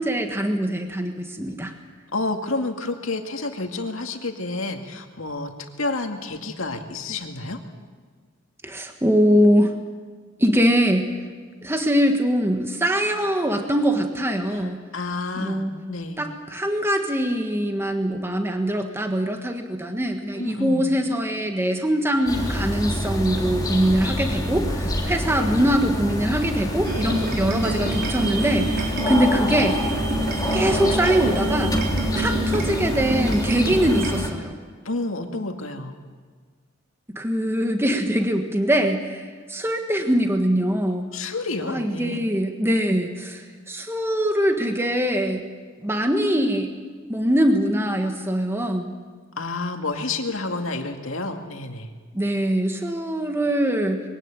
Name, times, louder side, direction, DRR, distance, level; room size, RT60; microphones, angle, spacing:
voice 1, 0.0-1.7 8.6-9.7 10.4-11.1 11.6-14.8 15.4-15.7 16.2-29.8 30.5-31.7 32.1-34.6 37.1-41.1 41.6-45.4 45.8-46.7 47.1-48.9 52.1-54.0, equal, 10° right, 4 dB, 1.5 m, -23 dB
voice 2, 2.1-5.5 5.8-7.6 14.5-16.2 20.3-20.9 25.2-25.6 34.8-36.0 41.1-42.2 49.4-51.9, left 3 dB, 80° left, 4 dB, 2.2 m, -30 dB
sound 1, 22.3-34.3, equal, 20° left, 3.0 m, -27 dB
sound 2, 26.8-34.1, right 1 dB, 55° right, 4.1 m, -27 dB
22.5 x 17.0 x 9.1 m, 1.6 s
head